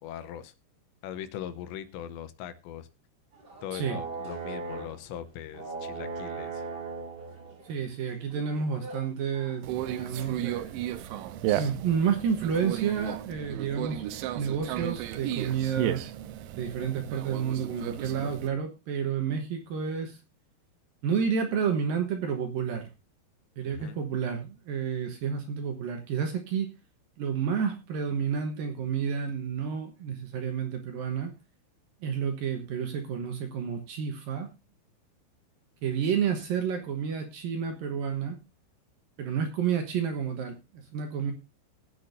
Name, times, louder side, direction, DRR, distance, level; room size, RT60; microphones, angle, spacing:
voice 1, 0.0-0.5 1.0-2.9 3.6-6.7 23.7-24.0, left 10 dB, 85° left, 11 dB, 3.1 m, -40 dB
sound 1, 3.3-5.1 5.5-12.2 12.5-12.6, right 4 dB, 30° right, 2.6 m, -40 dB
voice 2, 7.6-10.8 11.6-14.0 14.4-16.0 16.5-20.2 21.0-22.9 23.6-26.7 27.2-31.3 32.0-34.5 35.8-38.4 39.2-41.3, right 7 dB, 65° right, 5 dB, 2.4 m, -30 dB
Conversation, 9.6-18.5, right 12 dB, 90° right, 3.2 m, -34 dB
21.0 x 8.5 x 2.7 m, 0.25 s
omnidirectional pair, 5.2 m